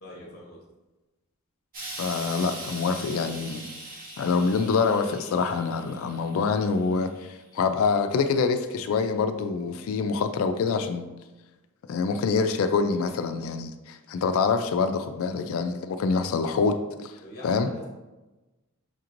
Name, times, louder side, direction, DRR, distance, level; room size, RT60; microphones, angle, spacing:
voice 1, 0.0-0.6 17.2-17.8, left 1 dB, 45° left, -2 dB, 0.7 m, -44 dB
Explosion, 1.7-7.0 7.9-8.0, right 2 dB, 40° right, 1.0 m, -41 dB
voice 2, 2.0-3.7 4.2-11.1 11.9-17.2 17.4-17.7, left 5 dB, 65° left, 9 dB, 0.3 m, -26 dB
5.8 x 3.0 x 2.5 m, 1.1 s
head